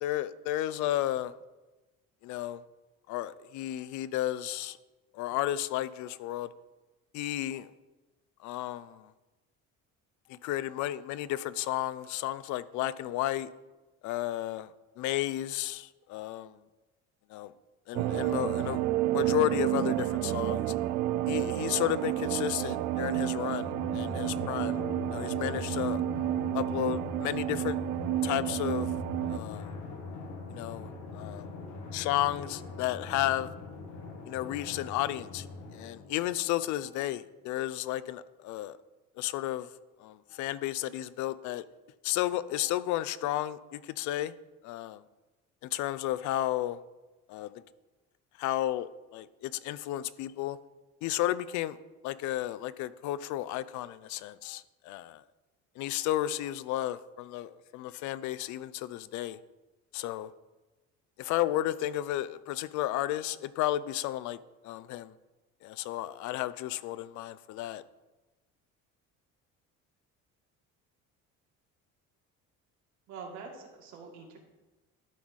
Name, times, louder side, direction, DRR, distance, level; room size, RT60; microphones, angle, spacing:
voice 1, 0.0-1.3 2.2-2.6 3.1-4.8 5.1-6.5 7.1-7.7 8.4-9.1 10.3-13.5 14.0-16.6 17.3-17.5 17.9-18.8 19.1-20.7 21.3-24.8 25.1-26.0 26.5-27.8 28.2-29.0 29.3-29.7 30.5-31.5 31.9-33.5 34.3-35.5 35.7-38.8 39.2-39.7 40.0-41.7 42.0-44.3 44.6-45.0 45.6-46.8 47.3-47.6 48.4-50.6 51.0-51.8 52.0-55.2 55.8-59.4 59.9-60.3 61.2-65.1 65.6-67.8, left 14 dB, 70° left, 0.4 m, -33 dB
sound 1, 17.9-29.4, right 13 dB, 90° right, 0.5 m, -30 dB
Drum, 23.6-36.7, left 3 dB, 90° left, 1.7 m, -41 dB
voice 2, 73.1-74.4, right 5 dB, 65° right, 1.9 m, -45 dB
12.0 x 4.7 x 4.1 m
cardioid pair, 150°, 30 cm